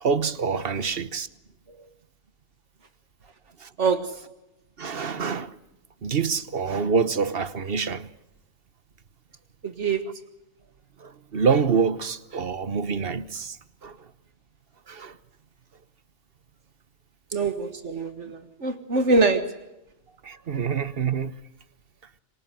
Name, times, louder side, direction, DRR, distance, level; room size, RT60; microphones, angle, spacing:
voice 1, 0.0-1.3 3.6-3.7 4.8-5.5 6.0-8.1 11.0-13.6 13.8-14.0 14.9-15.1 20.2-21.3, right 5 dB, 55° right, 1.3 m, -26 dB
voice 2, 3.8-4.2 9.6-10.1 17.3-19.6, right 3 dB, 75° right, 2.0 m, -24 dB
26.5 x 24.5 x 7.8 m
omnidirectional pair, 1.2 m